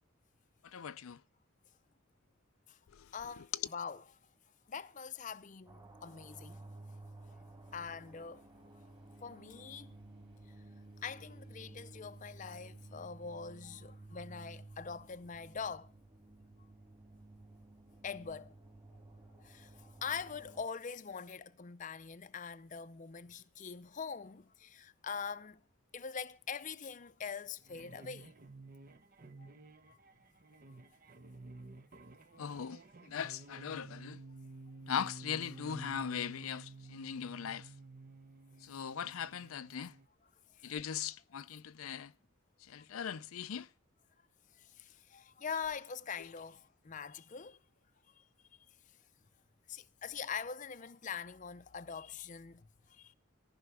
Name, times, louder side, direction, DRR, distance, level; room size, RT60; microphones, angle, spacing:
voice 1, 0.6-1.2 2.9-3.1 3.5-3.6 32.4-34.2 34.9-37.7 38.6-39.9 40.6-42.1 42.6-43.7 46.2-46.3, left 8 dB, 85° left, 0.5 m, -40 dB
voice 2, 3.1-4.0 4.7-6.6 7.3-7.4 7.7-8.4 9.2-9.9 11.0-15.9 18.0-18.5 19.4-25.6 25.9-28.4 29.4-29.5 29.9-30.0 32.3-32.4 38.7-38.8 40.5-40.7 42.8-42.9 44.6-47.6 48.2-48.3 49.7-53.1, left 6 dB, 35° left, 0.5 m, -43 dB
sound 1, 5.7-20.6, right 2 dB, 25° right, 2.7 m, -54 dB
sound 2, 27.6-40.1, right 3 dB, 45° right, 0.7 m, -52 dB
14.5 x 5.7 x 8.1 m
head